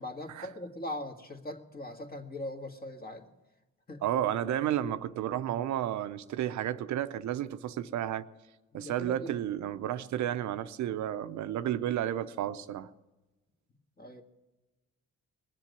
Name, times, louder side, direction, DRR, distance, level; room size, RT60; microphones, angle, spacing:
voice 1, 0.0-3.3 3.9-4.0 8.7-9.3 14.0-14.2, left 1 dB, 30° left, 1.8 m, -40 dB
voice 2, 4.0-8.3 8.7-12.9, right 11 dB, 70° right, 0.7 m, -32 dB
20.0 x 7.5 x 9.4 m
cardioid pair, 90°, 30 cm